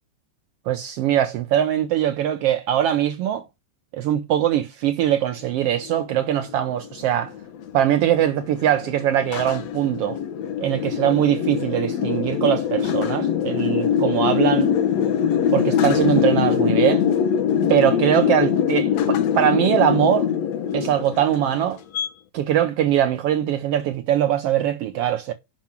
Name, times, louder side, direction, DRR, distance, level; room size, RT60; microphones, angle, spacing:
voice 1, 0.7-3.4 3.9-7.3 7.7-10.2 10.6-14.7 15.5-17.0 17.7-20.3 20.7-21.8 22.3-25.3, right 11 dB, 85° right, 1.3 m, -21 dB
sound 1, 5.7-22.1, left 8 dB, 65° left, 2.2 m, -23 dB
7.5 x 5.8 x 7.3 m
omnidirectional pair, 3.6 m